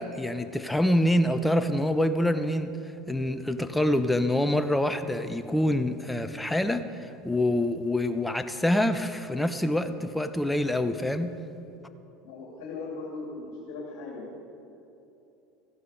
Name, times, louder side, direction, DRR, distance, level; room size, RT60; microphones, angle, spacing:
voice 1, 0.0-2.7 3.1-11.4, left 1 dB, 5° left, 10 dB, 0.8 m, -26 dB
voice 2, 12.2-14.4, left 3 dB, 60° left, -3 dB, 2.5 m, -38 dB
15.0 x 11.5 x 5.0 m, 2.9 s
hypercardioid pair, 75°, 0 cm